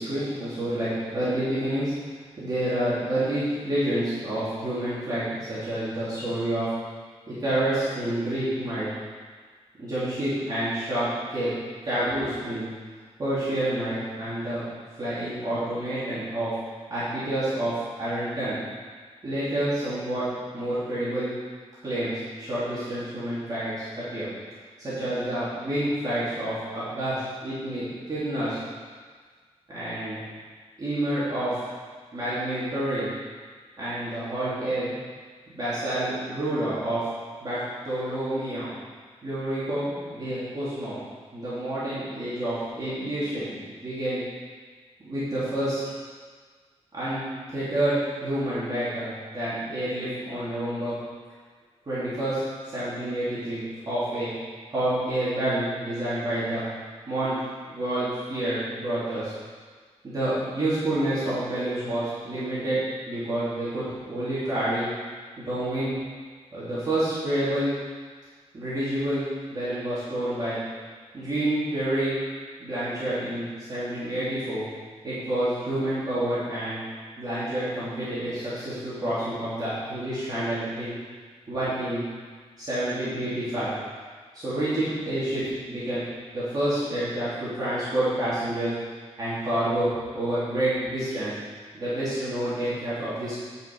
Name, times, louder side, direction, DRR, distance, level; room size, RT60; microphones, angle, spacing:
voice 1, 0.0-1.9 2.4-6.7 7.3-8.9 9.8-11.5 11.8-12.7 13.2-14.6 15.0-16.5 16.9-18.6 19.2-20.3 20.5-21.3 21.8-24.3 24.8-28.6 29.7-30.2 30.8-31.6 32.1-33.1 33.8-34.9 35.5-37.0 37.4-38.7 39.2-41.0 41.3-44.2 45.0-45.8 46.9-50.9 51.9-52.4 52.7-54.3 54.7-56.6 57.1-57.4 57.7-59.3 60.0-62.8 63.1-64.9 65.4-65.9 66.5-67.7 68.5-69.2 69.5-70.6 71.1-72.2 72.6-74.6 75.0-76.8 77.2-80.9 81.5-82.0 82.6-83.7 84.3-85.4 85.7-86.0 86.3-88.7 89.2-89.9 90.1-91.3 91.7-93.3, right 1 dB, 35° right, -12 dB, 3.2 m, -28 dB
10.5 x 5.6 x 5.6 m, 1.6 s
wide cardioid pair, 135°, 11 cm